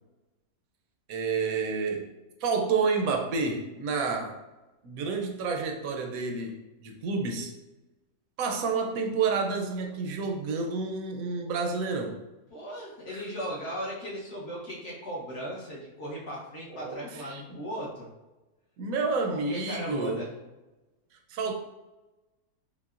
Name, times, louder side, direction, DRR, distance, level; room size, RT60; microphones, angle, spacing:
voice 1, 1.1-2.1 2.4-4.4 4.8-7.5 8.4-12.2 13.1-13.2 16.7-17.6 18.8-20.2 21.3-21.5, right 4 dB, 70° right, 3 dB, 0.9 m, -29 dB
voice 2, 12.5-18.1 19.3-20.3, equal, 55° left, -5 dB, 1.0 m, -37 dB
5.5 x 2.1 x 2.4 m, 1.1 s
omnidirectional pair, 1.7 m